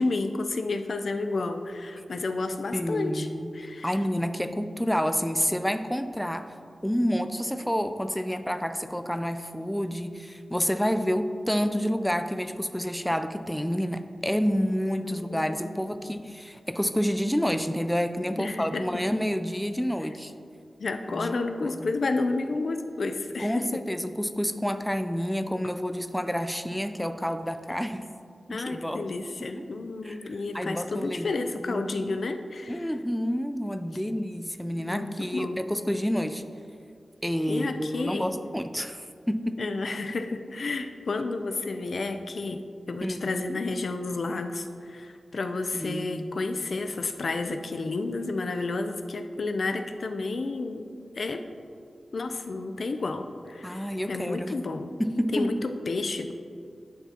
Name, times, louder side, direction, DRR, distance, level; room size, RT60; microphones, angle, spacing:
voice 1, 0.0-3.3 3.5-3.9 15.0-15.8 18.4-19.0 20.8-23.8 27.7-27.8 28.5-32.9 34.8-35.6 37.5-38.3 39.6-42.6 42.9-50.9 51.2-51.4 52.1-54.9 55.3-56.3, left 3 dB, 65° left, 7 dB, 0.4 m, -31 dB
voice 2, 2.7-3.5 3.8-6.5 6.8-20.3 21.1-21.4 21.6-21.9 23.4-28.1 28.5-29.0 30.0-31.3 31.6-32.2 32.7-36.4 37.2-39.6 43.0-43.6 45.7-46.4 53.6-54.6 55.0-55.6, equal, 5° left, 9 dB, 0.3 m, -29 dB
10.5 x 5.8 x 2.9 m, 2.3 s
wide cardioid pair, 70°, 0 cm